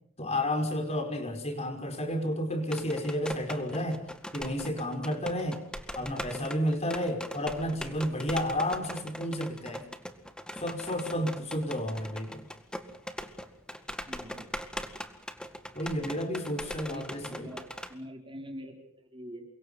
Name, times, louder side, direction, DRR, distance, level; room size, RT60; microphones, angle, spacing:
voice 1, 0.2-5.6 6.0-9.9 10.6-12.5 15.8-17.5, equal, 30° left, 6 dB, 5.4 m, -31 dB
sound 1, 2.6-17.9, equal, 5° left, 1.9 m, -41 dB
voice 2, 14.1-14.5 16.5-19.5, equal, 25° right, 2 dB, 4.6 m, -44 dB
29.0 x 25.0 x 5.7 m, 0.70 s
head